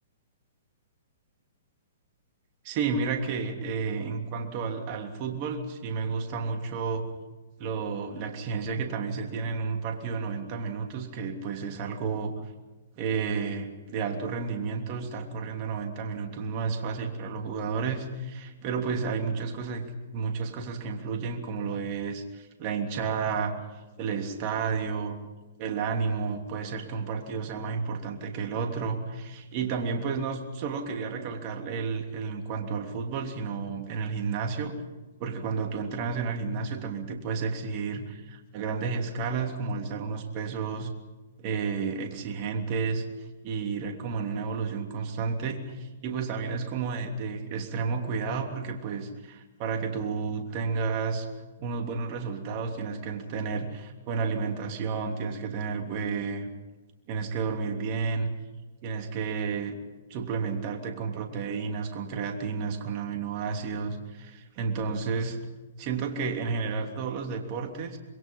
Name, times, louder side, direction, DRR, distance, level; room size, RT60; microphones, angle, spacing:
voice 1, 2.6-7.1 7.6-12.3 13.0-19.8 20.1-23.6 24.0-25.2 25.6-34.7 35.2-40.9 41.4-43.0 43.4-51.3 51.6-56.5 57.1-58.3 58.8-59.8 60.1-65.4 65.8-68.0, right 5 dB, 40° right, 3 dB, 3.1 m, -31 dB
26.0 x 22.5 x 5.6 m, 1.2 s
hypercardioid pair, 130°, 0 cm